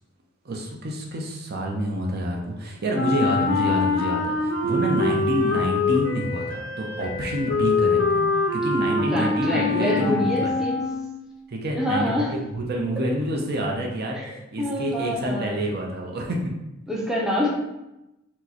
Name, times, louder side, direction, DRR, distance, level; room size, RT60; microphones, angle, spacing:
voice 1, 0.4-8.2 8.5-10.5 11.5-16.4, right 1 dB, 55° right, 0 dB, 0.6 m, -28 dB
Wind instrument woodwind instrument, 2.9-11.2, left 3 dB, 85° left, 0.6 m, -24 dB
voice 2, 8.9-10.9 11.7-12.3 14.1-15.6 16.9-17.5, left 1 dB, 5° right, -3 dB, 0.5 m, -27 dB
4.5 x 2.1 x 2.8 m, 0.93 s
head